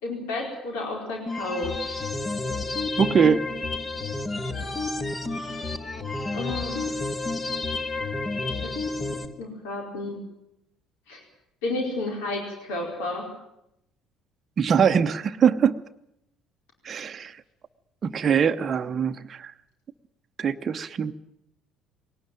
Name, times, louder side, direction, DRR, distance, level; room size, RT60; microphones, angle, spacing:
voice 1, 0.0-2.0 6.3-6.9 8.5-8.7 9.1-10.2 11.1-11.2 11.6-13.3, left 2 dB, 65° left, 1 dB, 4.6 m, -32 dB
sound 1, 1.3-9.3, left 3 dB, 25° left, 2.0 m, -30 dB
voice 2, 3.0-3.4 14.6-15.8 16.8-17.4 18.0-19.5 20.4-21.1, right 7 dB, 35° right, 7 dB, 0.9 m, -22 dB
20.5 x 18.5 x 9.1 m, 0.81 s
figure-of-eight pair, 55°, 0 cm